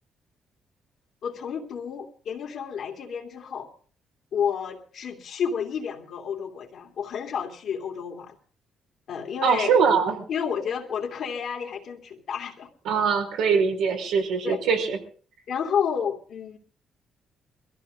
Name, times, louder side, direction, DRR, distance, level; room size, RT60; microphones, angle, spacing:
voice 1, 1.2-3.7 4.3-8.3 9.1-9.8 10.3-12.7 14.4-14.6 15.5-16.6, left 7 dB, 70° left, -2 dB, 2.8 m, -30 dB
voice 2, 9.4-10.2 12.9-15.0, right 6 dB, 85° right, 2 dB, 4.6 m, -22 dB
22.5 x 15.0 x 3.8 m, 0.41 s
cardioid pair, 90°, 0 cm